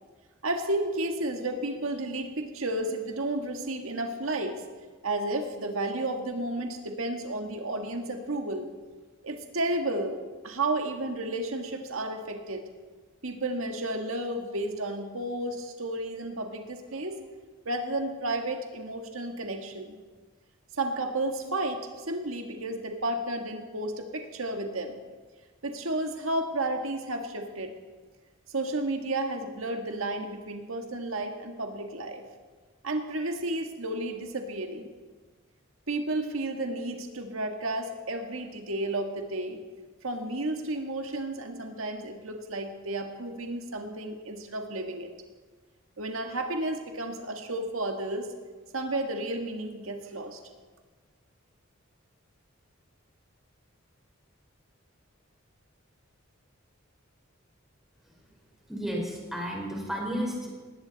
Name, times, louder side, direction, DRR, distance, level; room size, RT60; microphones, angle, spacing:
voice 1, 0.4-4.6 5.0-8.7 9.2-10.2 10.4-12.6 13.2-17.2 17.6-20.0 20.8-25.0 25.6-27.7 28.5-32.2 32.8-34.9 35.9-39.6 40.0-45.1 46.0-48.3 48.7-50.4, right 2 dB, 90° right, 4 dB, 1.7 m, -32 dB
voice 2, 58.7-60.5, equal, ahead, -2 dB, 4.3 m, -32 dB
20.0 x 17.0 x 4.1 m, 1.4 s
head